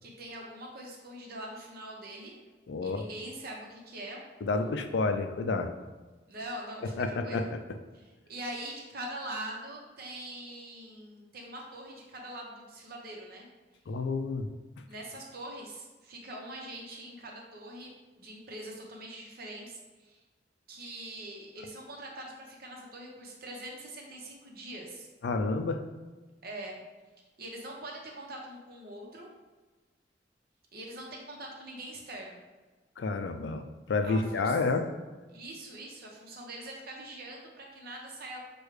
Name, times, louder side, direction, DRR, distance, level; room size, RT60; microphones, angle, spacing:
voice 1, 0.0-2.3 2.8-4.2 6.3-7.5 7.9-13.5 14.9-17.9 18.2-20.2 20.7-25.1 26.4-26.8 27.4-29.3 30.7-32.4 34.0-34.6 35.3-38.4, right 1 dB, 60° right, -1 dB, 0.9 m, -43 dB
voice 2, 2.7-3.0 4.4-5.7 7.0-7.6 13.9-14.5 25.2-25.8 33.0-34.9, left 3 dB, 75° left, 7 dB, 0.4 m, -30 dB
6.3 x 2.3 x 3.2 m, 1.3 s
head